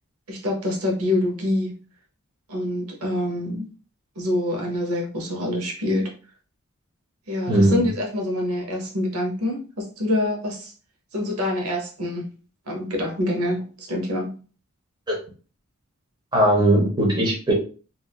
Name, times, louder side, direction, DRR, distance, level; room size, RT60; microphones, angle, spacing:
voice 1, 0.3-1.8 2.5-3.6 4.2-6.1 7.3-10.7 11.1-12.3 12.7-14.3, left 1 dB, 90° right, 0 dB, 0.9 m, -26 dB
voice 2, 7.5-7.9 15.1-15.2 16.3-17.5, right 1 dB, 20° right, -3 dB, 0.9 m, -19 dB
3.4 x 2.6 x 2.3 m, 0.37 s
head